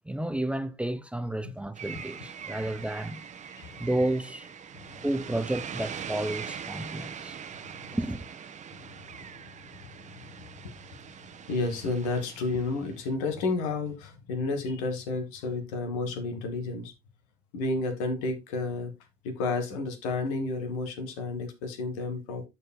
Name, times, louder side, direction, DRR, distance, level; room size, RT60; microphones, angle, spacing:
voice 1, 0.1-3.2 3.8-4.5 5.0-7.4 7.9-8.2, right 1 dB, 5° right, 0.6 m, -31 dB
sound 1, 1.8-13.1, right 7 dB, 40° right, 1.2 m, -42 dB
voice 2, 3.6-3.9 7.7-7.8 8.7-8.9 10.6-10.7 11.5-16.9 17.5-18.9 19.2-22.4, left 3 dB, 70° left, 1.7 m, -31 dB
13.5 x 4.6 x 2.2 m
figure-of-eight pair, 55°, 18 cm